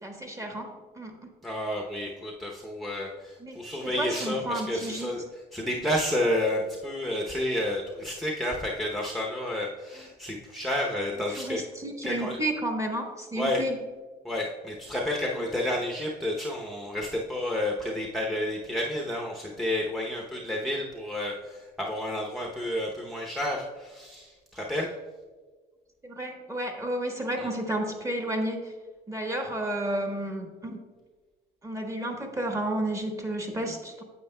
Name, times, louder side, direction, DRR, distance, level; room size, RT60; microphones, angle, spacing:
voice 1, 0.0-1.3 3.4-5.1 10.0-10.1 11.3-13.8 15.3-15.4 26.0-28.7 29.1-30.8 31.6-34.0, right 1 dB, 20° right, 3 dB, 1.2 m, -32 dB
voice 2, 1.4-5.2 5.5-11.6 12.0-12.4 13.4-13.6 14.2-24.9, left 1 dB, ahead, -2 dB, 0.7 m, -30 dB
9.2 x 7.5 x 2.2 m, 1.4 s
cardioid pair, 110°, 17 cm